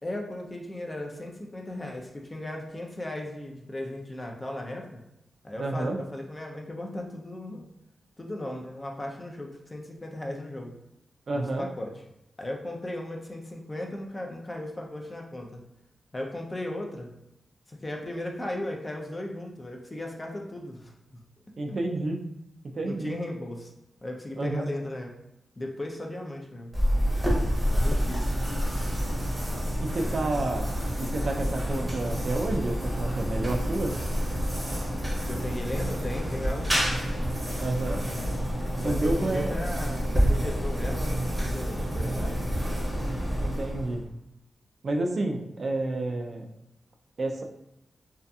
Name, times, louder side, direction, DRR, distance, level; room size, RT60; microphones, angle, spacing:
voice 1, 0.0-5.0 5.4-7.7 8.2-10.8 11.3-11.9 12.4-15.6 16.1-17.1 17.7-21.2 21.7-21.9 22.8-23.7 24.0-25.1 25.6-26.8 27.7-28.3 28.7-28.9 35.3-36.9 38.8-42.4, left 1 dB, 25° left, 1 dB, 0.4 m, -36 dB
voice 2, 5.6-6.0 11.3-11.7 21.6-22.2 22.7-23.1 24.4-24.7 29.8-30.7 31.0-34.0 37.6-38.0 38.8-39.5 43.4-44.0 44.8-46.5 47.2-47.4, right 2 dB, 55° right, 3 dB, 0.3 m, -30 dB
sound 1, 26.7-44.1, equal, 15° right, 0.7 m, -28 dB
2.7 x 2.4 x 2.2 m, 0.86 s
wide cardioid pair, 85°, 0 cm